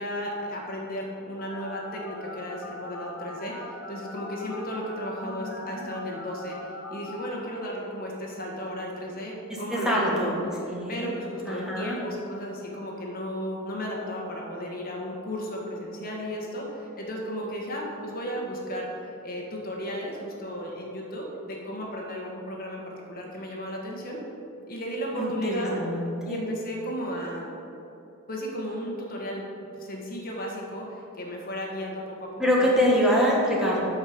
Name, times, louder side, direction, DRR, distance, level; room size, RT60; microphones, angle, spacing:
voice 1, 0.0-10.4 10.9-18.9 19.2-24.2 24.7-25.7 26.2-27.5 28.3-29.5 29.7-32.8, equal, 45° left, -1 dB, 1.4 m, -34 dB
Telephone, 1.4-7.2, left 2 dB, 65° left, 1.9 m, -41 dB
voice 2, 5.2-5.8 9.7-10.4 10.6-11.1 11.5-12.0 25.1-26.4 32.4-33.8, equal, 5° right, -5 dB, 1.4 m, -25 dB
12.5 x 4.9 x 5.2 m, 2.9 s
head